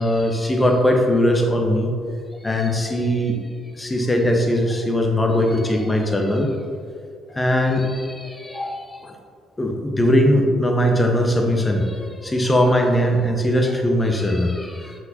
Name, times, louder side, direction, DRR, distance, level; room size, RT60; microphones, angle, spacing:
voice 1, 0.0-1.9 2.4-3.4 3.8-6.5 7.3-9.1 9.6-15.0, equal, 20° left, 2 dB, 1.1 m, -20 dB
7.5 x 5.9 x 2.9 m, 2.2 s
figure-of-eight pair, 45°, 0 cm